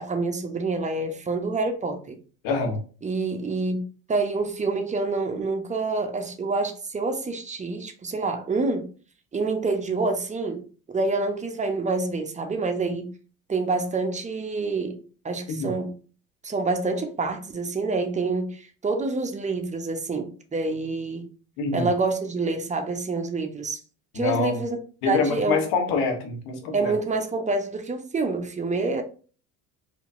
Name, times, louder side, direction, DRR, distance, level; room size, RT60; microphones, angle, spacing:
voice 1, 0.0-2.2 3.0-3.8 4.1-8.9 9.3-13.1 13.5-15.9 16.4-21.3 21.7-23.8 24.1-24.8 25.1-25.6 26.7-29.0, right 3 dB, 15° right, 0.9 m, -27 dB
voice 2, 2.4-2.8 15.5-15.7 21.6-21.9 24.1-24.6 25.0-26.9, left 4 dB, 65° left, 1.3 m, -25 dB
4.3 x 2.8 x 2.6 m
hypercardioid pair, 65°, 41 cm